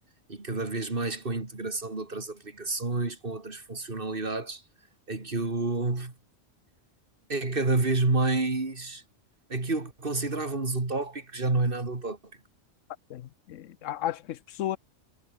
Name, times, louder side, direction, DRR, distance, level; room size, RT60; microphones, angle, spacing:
voice 1, 0.3-4.6 5.1-6.1 7.3-9.0 9.5-12.2, right 3 dB, 45° right, 3.0 m, -29 dB
voice 2, 13.1-14.8, left 12 dB, 80° left, 1.1 m, -34 dB
omnidirectional pair, 1.3 m